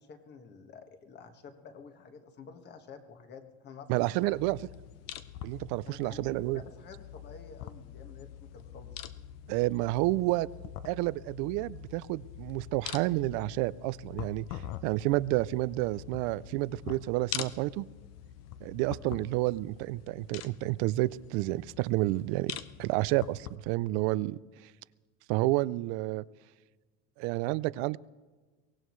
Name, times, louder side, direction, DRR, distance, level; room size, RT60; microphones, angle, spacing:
voice 1, 0.0-4.4 5.8-9.0 19.1-19.2, left 5 dB, 30° left, 5 dB, 1.6 m, -50 dB
voice 2, 3.9-4.6 5.4-6.6 9.5-10.5 10.8-17.8 18.6-24.7 25.3-26.2 27.2-28.0, right 19 dB, 65° right, 20 dB, 0.5 m, -30 dB
sound 1, 4.0-23.6, left 11 dB, 50° left, 0.8 m, -44 dB
23.5 x 18.0 x 3.2 m, 1.3 s
cardioid pair, 150°, 32 cm